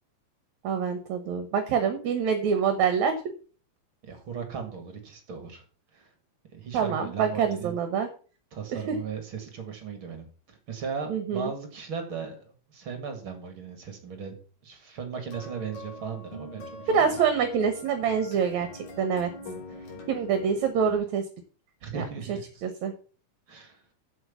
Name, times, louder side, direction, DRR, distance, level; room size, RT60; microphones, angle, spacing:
voice 1, 0.6-3.1 6.7-8.1 8.9-9.0 11.1-11.5 16.9-18.7 19.0-19.3 20.1-21.2 21.9-22.0 22.6-22.9, right 7 dB, 65° right, 8 dB, 2.3 m, -25 dB
voice 2, 4.0-5.6 5.9-6.1 6.5-7.8 8.5-14.4 14.6-17.1 21.8-22.4 23.5-23.8, right 6 dB, 45° right, 6 dB, 2.3 m, -37 dB
sound 1, 15.1-21.0, left 2 dB, 65° left, 4.5 m, -43 dB
7.9 x 7.2 x 7.0 m, 0.38 s
omnidirectional pair, 3.8 m